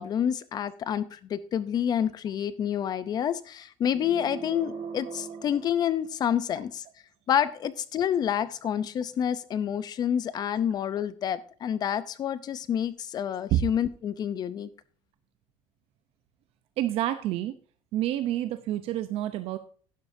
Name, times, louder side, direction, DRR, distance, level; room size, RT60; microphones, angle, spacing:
voice 1, 0.0-6.8 7.3-14.7, left 9 dB, 35° left, 16 dB, 0.6 m, -28 dB
sound 1, 3.9-6.6, right 6 dB, 35° right, 4.9 m, -40 dB
voice 2, 16.8-17.5 17.9-19.6, right 13 dB, 60° right, 11 dB, 0.7 m, -28 dB
11.5 x 10.5 x 2.7 m, 0.43 s
cardioid pair, 165°, 11 cm